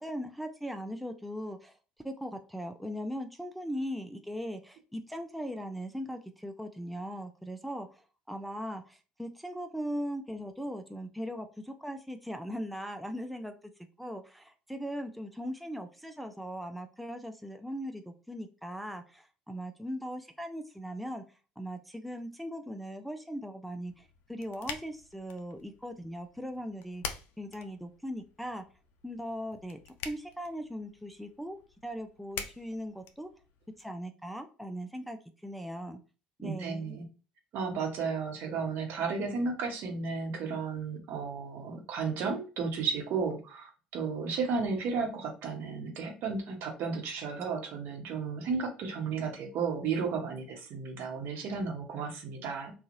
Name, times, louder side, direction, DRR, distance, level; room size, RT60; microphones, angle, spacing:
voice 1, 0.0-1.8 2.0-13.5 14.0-21.2 21.6-27.0 27.4-28.6 29.0-29.8 30.0-33.3 33.8-36.0 36.4-37.0, equal, ahead, 6 dB, 0.4 m, -39 dB
sound 1, 23.9-33.8, left 7 dB, 60° left, 0.5 m, -46 dB
voice 2, 36.4-37.0 37.5-52.7, right 5 dB, 60° right, 3 dB, 1.0 m, -33 dB
2.8 x 2.3 x 2.6 m, 0.35 s
hypercardioid pair, 60°, 4 cm